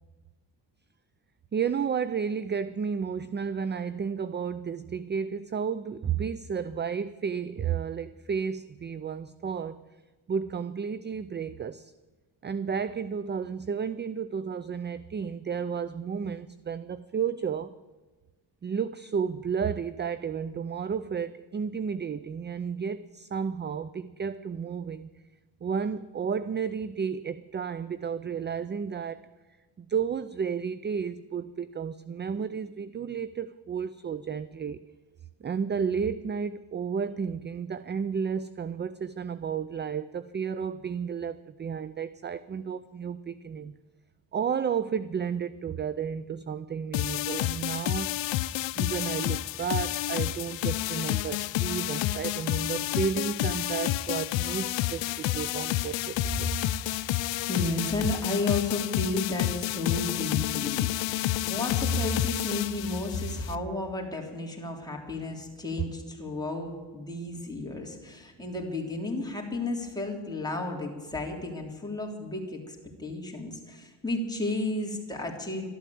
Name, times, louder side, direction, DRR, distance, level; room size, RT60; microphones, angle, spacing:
voice 1, 1.5-9.8 10.3-11.9 12.4-17.7 18.6-25.1 25.6-29.2 29.8-34.8 35.4-43.8 44.3-48.1 48.8-56.5, right 6 dB, 25° right, 15 dB, 0.4 m, -32 dB
sound 1, 46.9-63.5, left 15 dB, 90° left, 0.5 m, -30 dB
voice 2, 57.1-75.7, left 2 dB, 10° left, 0 dB, 3.4 m, -33 dB
13.0 x 12.0 x 8.5 m, 1.2 s
cardioid pair, 100°, 44 cm